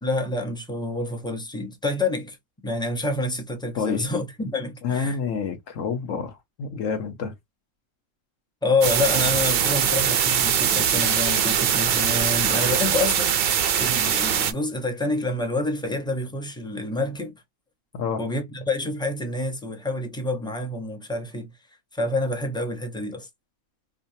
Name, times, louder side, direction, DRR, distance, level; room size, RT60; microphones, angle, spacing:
voice 1, 0.0-2.4 2.6-5.2 8.6-13.4 13.8-17.3 18.2-21.5 21.9-23.3, left 2 dB, 5° left, 0.6 m, -27 dB
voice 2, 3.7-4.1 4.8-7.3 17.9-18.2, left 6 dB, 65° left, 1.2 m, -28 dB
sound 1, 8.8-14.5, right 8 dB, 60° right, 0.6 m, -22 dB
4.8 x 2.1 x 2.7 m
omnidirectional pair, 1.5 m